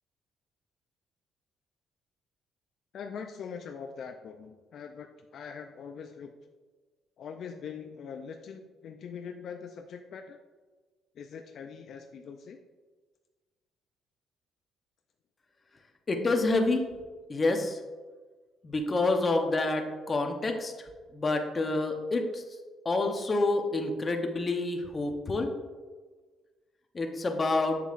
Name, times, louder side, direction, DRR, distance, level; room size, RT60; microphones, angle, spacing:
voice 1, 2.9-6.3 7.2-10.4 11.2-12.6, left 6 dB, 60° left, 5 dB, 0.4 m, -42 dB
voice 2, 16.1-16.8 17.3-17.8 18.6-20.9 21.1-22.4 22.8-25.5 26.9-27.8, left 2 dB, 25° left, 4 dB, 0.8 m, -28 dB
7.6 x 6.9 x 2.5 m, 1.4 s
cardioid pair, 115°, 0 cm